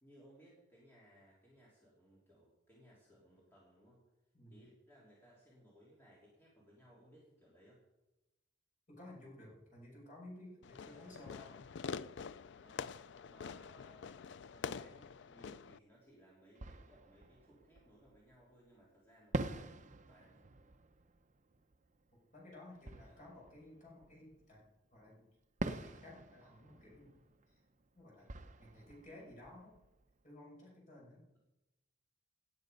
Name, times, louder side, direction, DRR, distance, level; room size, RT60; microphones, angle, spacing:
voice 1, 0.0-4.0 4.5-7.8 10.8-11.1 12.6-12.9 13.2-20.5 23.0-23.3, equal, 10° left, -6 dB, 3.4 m, -64 dB
voice 2, 8.9-11.6 22.3-24.7 24.9-25.3 25.6-27.1 27.5-27.6 27.9-28.3 28.6-29.8 30.2-31.2, left 1 dB, 40° left, -3 dB, 6.0 m, -55 dB
Fireworks, 10.6-15.8, left 6 dB, 60° left, 0.4 m, -46 dB
Fireworks 2, 15.9-16.0 16.5-18.5 19.3-24.7 25.6-30.3, right 2 dB, 35° right, 0.8 m, -46 dB
18.0 x 9.6 x 5.3 m, 0.99 s
head